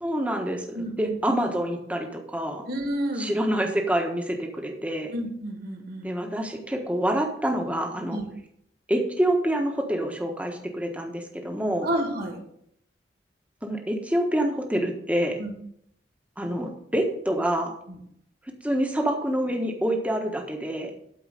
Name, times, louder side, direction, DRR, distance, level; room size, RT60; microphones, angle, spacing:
voice 1, 0.0-2.7 3.2-5.1 6.0-8.2 8.9-11.9 13.6-15.4 16.4-17.7 18.6-20.9, right 1 dB, 10° right, 2 dB, 1.3 m, -27 dB
voice 2, 0.7-1.1 2.7-3.4 5.1-6.1 8.1-8.3 11.8-12.4 15.4-15.5, right 1 dB, 55° right, 2 dB, 2.4 m, -30 dB
12.0 x 4.8 x 6.6 m, 0.73 s
head